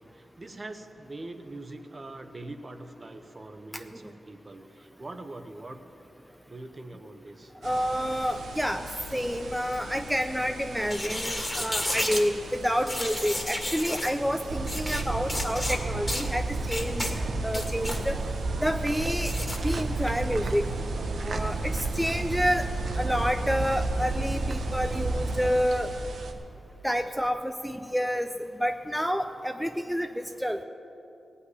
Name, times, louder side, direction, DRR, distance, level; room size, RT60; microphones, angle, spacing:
voice 1, 0.1-5.8 6.5-7.5, right 2 dB, 35° right, 7 dB, 1.1 m, -43 dB
voice 2, 7.6-8.8 9.1-17.1 17.4-18.2 18.6-19.3 19.6-20.7 21.2-22.7 23.0-25.9 26.8-30.6, equal, ahead, 6 dB, 0.6 m, -29 dB
sound 1, 7.6-26.3, right 1 dB, 85° right, 1.1 m, -42 dB
sound 2, 10.8-12.3 12.9-14.1 14.6-15.0 15.3-15.8 16.1-16.3 16.7-17.1 17.5-18.0 19.2-19.6, left 1 dB, 15° left, 2.0 m, -31 dB
sound 3, 14.5-25.6, right 3 dB, 65° right, 0.8 m, -31 dB
16.0 x 5.7 x 9.7 m, 2.8 s
cardioid pair, 60°, 0 cm